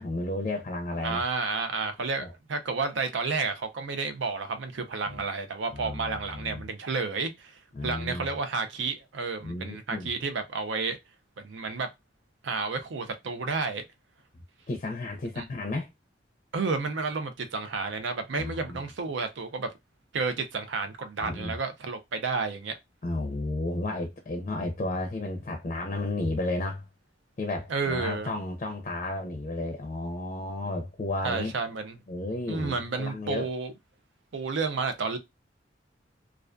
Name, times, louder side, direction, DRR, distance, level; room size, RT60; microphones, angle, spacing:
voice 1, 0.0-1.2 2.2-2.3 5.1-5.2 5.7-6.6 7.7-8.3 9.4-10.1 14.7-15.9 18.4-18.8 21.2-21.6 23.0-26.9 27.4-31.5 32.1-33.5, left 2 dB, 40° left, 0.4 m, -33 dB
voice 2, 1.0-11.0 11.4-11.9 12.4-13.8 15.4-15.5 16.5-19.7 20.1-22.8 27.7-28.3 31.2-32.0 32.5-33.7 34.3-35.2, right 4 dB, 90° right, 0.5 m, -31 dB
2.4 x 2.3 x 2.2 m
head